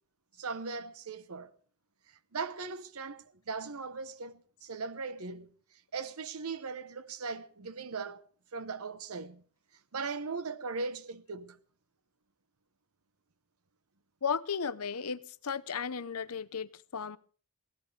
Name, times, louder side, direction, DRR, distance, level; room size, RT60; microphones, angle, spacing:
voice 1, 0.4-1.5 2.1-5.5 5.9-8.2 8.5-9.4 9.9-11.6, right 4 dB, 80° right, 0.9 m, -39 dB
voice 2, 14.2-17.2, left 6 dB, 85° left, 0.8 m, -35 dB
23.0 x 16.5 x 3.3 m
head